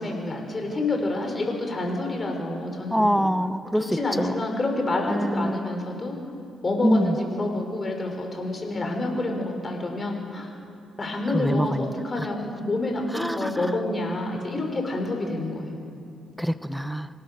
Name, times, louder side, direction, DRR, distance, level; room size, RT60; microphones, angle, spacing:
voice 1, 0.0-3.3 3.7-6.2 6.6-10.5 11.0-15.7, left 2 dB, 30° left, 2 dB, 5.2 m, -28 dB
voice 2, 2.9-3.9 4.2-4.4 5.1-5.6 6.8-7.2 11.3-11.9 12.2-12.3 13.1-13.7 16.4-17.1, equal, ahead, 12 dB, 0.9 m, -24 dB
25.5 x 18.0 x 6.8 m, 2.4 s
cardioid pair, 90°, 0 cm